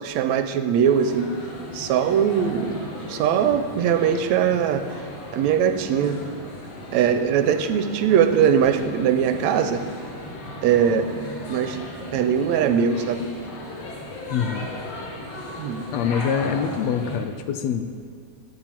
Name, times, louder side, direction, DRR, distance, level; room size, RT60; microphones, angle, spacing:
voice 1, 0.0-1.3 1.7-2.8 3.1-4.8 5.3-6.2 6.9-9.8 10.6-11.1 11.5-11.8 12.1-13.2 15.6-15.8, right 8 dB, 75° right, 9 dB, 1.9 m, -21 dB
sound 1, 0.8-17.2, left 1 dB, 60° left, 2.7 m, -37 dB
voice 2, 14.3-14.7 15.9-17.9, left 7 dB, 75° left, 9 dB, 1.8 m, -25 dB
13.5 x 9.5 x 7.5 m, 2.1 s
omnidirectional pair, 3.4 m